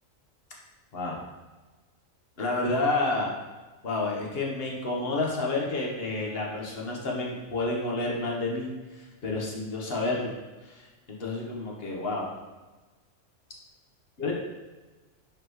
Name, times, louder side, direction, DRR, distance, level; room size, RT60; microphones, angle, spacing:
voice 1, 2.4-3.3 3.8-10.3 10.6-10.8 11.1-12.3 14.2-14.3, left 2 dB, 50° left, -2 dB, 1.3 m, -30 dB
7.8 x 4.3 x 3.1 m, 1.2 s
omnidirectional pair, 1.3 m